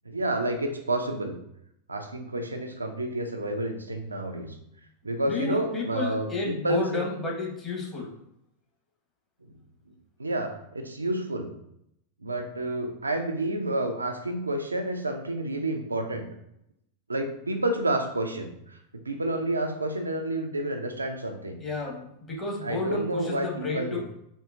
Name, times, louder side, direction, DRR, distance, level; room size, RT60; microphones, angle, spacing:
voice 1, 0.1-1.4 1.9-4.6 5.0-7.0 10.2-11.5 12.2-16.3 17.1-21.6 22.6-24.0, right 1 dB, 80° right, 5 dB, 0.4 m, -30 dB
voice 2, 5.2-8.1 21.6-24.0, left 3 dB, 20° left, -3 dB, 1.2 m, -32 dB
4.4 x 2.7 x 2.5 m, 0.77 s
figure-of-eight pair, 90°, 0 cm